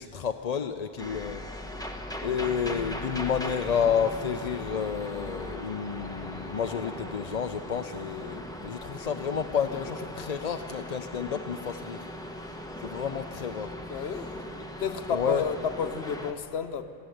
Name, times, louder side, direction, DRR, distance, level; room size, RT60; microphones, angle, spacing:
voice 1, 0.0-1.4 2.2-12.0 12.8-13.7 15.1-15.4, left 7 dB, 50° left, 0.6 m, -30 dB
sound 1, 1.0-16.3, left 1 dB, 5° left, 1.2 m, -39 dB
voice 2, 13.9-14.4 14.8-16.8, left 6 dB, 80° left, 1.1 m, -31 dB
22.5 x 14.5 x 7.8 m
omnidirectional pair, 1.0 m